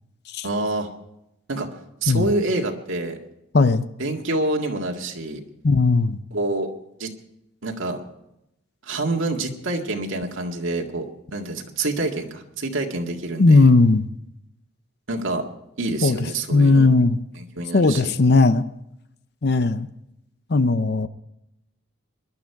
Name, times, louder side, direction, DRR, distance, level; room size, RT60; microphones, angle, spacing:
voice 1, 0.4-0.9 1.5-1.7 2.0-3.2 4.0-5.4 6.3-6.7 7.0-7.1 7.6-8.0 8.8-13.7 15.1-15.5 15.8-16.9 17.4-18.1, right 2 dB, 75° right, 2 dB, 1.9 m, -27 dB
voice 2, 3.5-3.9 5.6-6.2 13.4-14.1 16.0-16.2 16.5-17.2 17.7-18.6 19.4-19.9 20.5-21.1, left 3 dB, 50° left, 13 dB, 0.6 m, -17 dB
21.0 x 12.0 x 4.7 m, 0.84 s
head